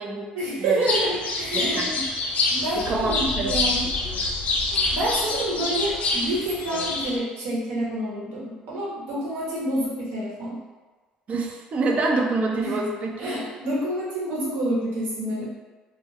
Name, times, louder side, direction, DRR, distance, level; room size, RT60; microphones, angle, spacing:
voice 1, 0.3-2.0 2.5-3.9 4.9-10.6 12.6-12.8 13.2-15.4, right 1 dB, 75° right, -6 dB, 1.0 m, -28 dB
sound 1, 0.9-7.2, left 3 dB, 55° left, 0.5 m, -26 dB
voice 2, 2.8-3.5 11.3-13.1, right 3 dB, 45° right, 0 dB, 0.5 m, -26 dB
2.3 x 2.1 x 3.4 m, 1.3 s
supercardioid pair, 75°, 3 cm